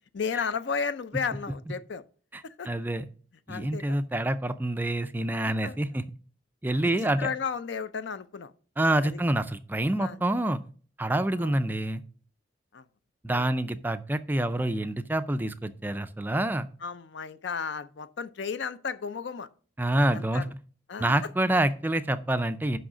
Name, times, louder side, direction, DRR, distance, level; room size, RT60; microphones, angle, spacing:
voice 1, 0.1-2.0 2.6-2.7 3.5-4.0 5.6-5.8 6.8-8.5 9.0-9.2 10.0-10.2 11.4-11.5 12.7-12.8 13.3-13.4 16.8-19.5 20.1-20.5 20.9-21.1, left 6 dB, 60° left, 0.5 m, -33 dB
voice 2, 2.3-3.1 3.5-6.0 6.6-7.3 8.8-10.6 11.0-12.0 13.2-16.7 19.8-20.5 21.0-22.8, right 1 dB, 10° right, 0.3 m, -27 dB
6.3 x 5.6 x 6.1 m
head